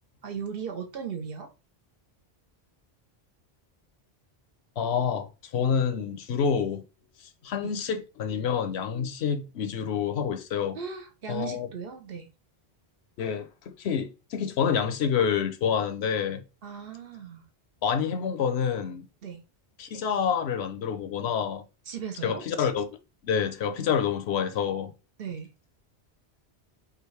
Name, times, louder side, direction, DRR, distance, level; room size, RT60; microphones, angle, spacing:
voice 1, 0.2-1.5 7.6-7.7 10.7-12.3 16.6-17.4 19.2-19.4 21.9-22.4 25.2-25.5, right 7 dB, 65° right, 1.0 m, -37 dB
voice 2, 4.8-5.3 5.5-6.8 7.4-10.8 11.3-11.7 13.2-16.4 17.8-19.1 19.8-21.6 22.2-22.9 23.2-24.9, left 7 dB, 80° left, 0.9 m, -27 dB
4.8 x 2.6 x 3.2 m
omnidirectional pair, 1.1 m